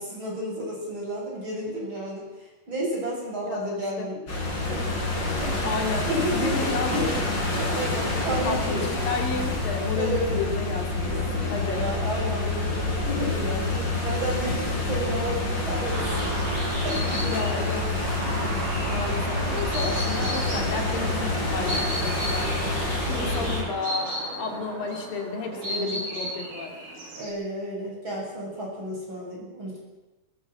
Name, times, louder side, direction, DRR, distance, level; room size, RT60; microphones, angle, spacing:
voice 1, 0.0-2.3 2.7-4.3 4.7-5.2 6.1-7.2 7.6-8.9 10.0-10.4 11.0-17.5 18.4-18.8 21.7-21.9 23.0-23.5 25.5-26.1 27.2-29.8, right 1 dB, 30° right, -2 dB, 8.4 m, -32 dB
voice 2, 3.4-4.1 5.4-7.2 8.4-11.2 11.5-11.9 17.2-17.8 18.9-22.6 23.1-26.7, left 4 dB, 70° left, 3 dB, 4.2 m, -32 dB
sound 1, 4.3-23.6, left 2 dB, 30° left, 6.0 m, -27 dB
sound 2, 15.9-27.3, right 1 dB, 85° right, 6.0 m, -34 dB
21.5 x 20.5 x 7.8 m, 1.1 s
omnidirectional pair, 4.3 m